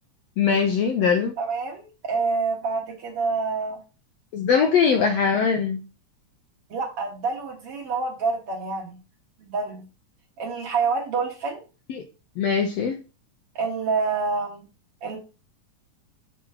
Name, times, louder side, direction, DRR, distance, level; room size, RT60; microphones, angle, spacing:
voice 1, 0.4-1.4 4.3-5.8 11.9-12.0 12.4-13.0, left 6 dB, 75° left, 4 dB, 1.5 m, -21 dB
voice 2, 1.4-3.8 6.7-9.0 9.4-9.8 10.4-11.6 13.6-14.7 15.0-15.2, right 4 dB, 55° right, 0 dB, 1.9 m, -27 dB
6.5 x 3.0 x 5.6 m, 0.32 s
omnidirectional pair, 3.6 m